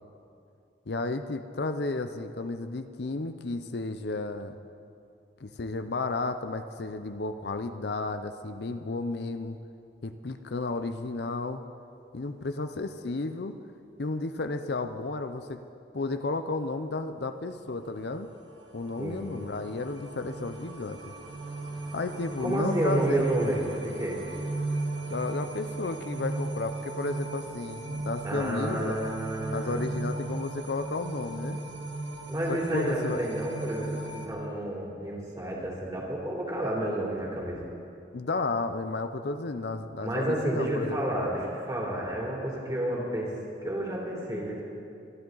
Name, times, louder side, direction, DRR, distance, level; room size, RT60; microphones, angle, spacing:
voice 1, 0.9-4.6 5.4-9.6 10.0-11.6 12.1-13.6 14.0-15.6 15.9-18.3 18.7-21.1 21.9-23.3 25.1-29.0 29.5-31.6 32.5-33.2 38.1-41.0, left 3 dB, 65° left, 9 dB, 0.6 m, -33 dB
sound 1, 18.0-34.3, right 2 dB, 75° right, 1.7 m, -36 dB
voice 2, 22.4-24.2 28.2-29.9 32.3-37.6 40.0-43.3 43.6-44.7, right 1 dB, 20° right, -4 dB, 3.2 m, -30 dB
24.5 x 12.5 x 3.9 m, 2.6 s
head